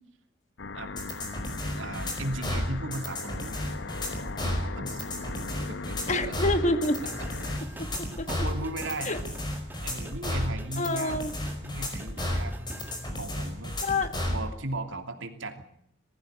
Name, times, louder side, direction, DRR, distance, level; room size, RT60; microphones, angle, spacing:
sound 1, 0.6-7.6, left 4 dB, 65° left, 0.9 m, -39 dB
sound 2, 1.0-14.4, left 1 dB, 25° left, 5.2 m, -32 dB
voice 1, 1.8-3.8 4.4-5.0 5.7-6.2 8.3-9.2 9.8-11.2 11.6-12.7 13.2-13.8 14.3-15.6, right 2 dB, 85° right, 6 dB, 2.9 m, -36 dB
voice 2, 6.1-7.0 8.2-8.3 9.0-9.2 10.8-11.3 13.8-14.1, left 2 dB, 40° left, 9 dB, 1.9 m, -26 dB
sound 3, 6.9-13.1, equal, 10° right, 1.6 m, -44 dB
20.0 x 15.5 x 9.1 m, 0.72 s
head